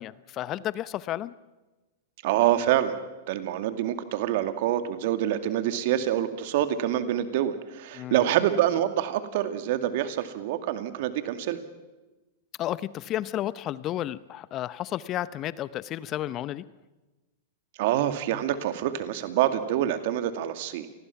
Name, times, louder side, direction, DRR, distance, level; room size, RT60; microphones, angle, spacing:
voice 1, 0.0-1.3 7.9-8.2 12.6-16.7, left 13 dB, 35° left, 17 dB, 0.8 m, -32 dB
voice 2, 2.2-2.9 3.3-11.6 17.8-20.9, right 12 dB, 60° right, 9 dB, 2.2 m, -26 dB
28.0 x 19.5 x 6.0 m, 1.1 s
hypercardioid pair, 105°, 0 cm